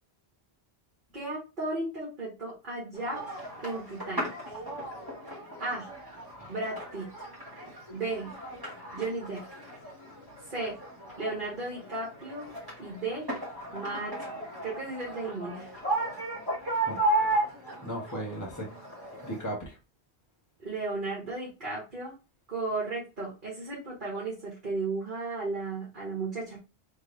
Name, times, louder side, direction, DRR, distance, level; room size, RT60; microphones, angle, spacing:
voice 1, 1.1-4.6 5.6-5.9 6.5-7.1 7.9-8.3 8.9-9.4 10.5-10.8 11.2-12.5 12.8-13.3 13.7-14.2 14.6-15.7 20.6-22.2 22.5-26.6, right 3 dB, 50° right, -5 dB, 1.9 m, -35 dB
sound 1, 2.9-19.4, right 2 dB, 20° right, 1.9 m, -35 dB
voice 2, 16.9-17.3 17.8-18.7 19.2-19.8, right 1 dB, 15° left, -3 dB, 1.5 m, -37 dB
3.6 x 3.6 x 3.3 m, 0.28 s
omnidirectional pair, 1.1 m